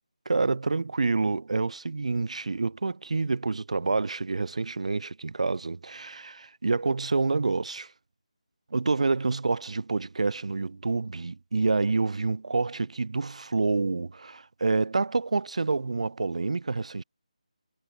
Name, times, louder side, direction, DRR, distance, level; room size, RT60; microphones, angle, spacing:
voice 1, 0.3-7.9 8.7-17.0, right 3 dB, 60° right, 0.4 m, -28 dB
figure-of-eight pair, 155°, 4 cm